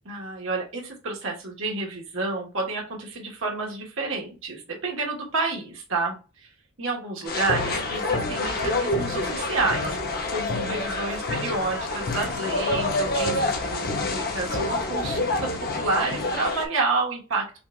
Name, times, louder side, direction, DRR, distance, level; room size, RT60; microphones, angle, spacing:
voice 1, 0.0-6.2 6.4-6.5 6.8-9.9 10.3-17.6, right 3 dB, 65° right, 0 dB, 1.3 m, -29 dB
sound 1, 7.3-16.7, left 2 dB, 40° left, 0.6 m, -27 dB
5.6 x 2.3 x 2.3 m, 0.32 s
head